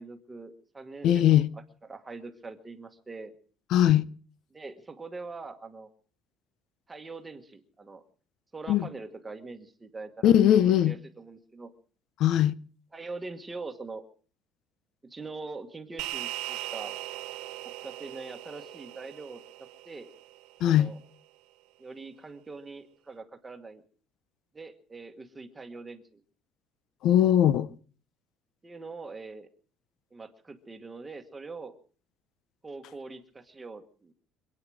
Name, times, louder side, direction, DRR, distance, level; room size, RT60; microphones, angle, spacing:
voice 1, 0.0-3.3 4.5-5.9 6.9-8.0 8.5-10.3 10.8-11.7 12.9-14.0 15.0-17.0 17.6-19.4 19.8-20.1 20.7-21.0 21.8-23.8 24.5-26.2 28.6-29.5 30.1-31.7 32.6-34.1, right 3 dB, 10° right, 1.4 m, -43 dB
voice 2, 1.0-1.5 3.7-4.0 8.7-8.8 10.2-10.9 12.2-12.5 20.6-20.9 27.0-27.7, left 11 dB, 55° left, 0.9 m, -20 dB
sound 1, 16.0-20.6, right 15 dB, 85° right, 1.8 m, -39 dB
25.5 x 9.0 x 6.3 m
cardioid pair, 170°, 0 cm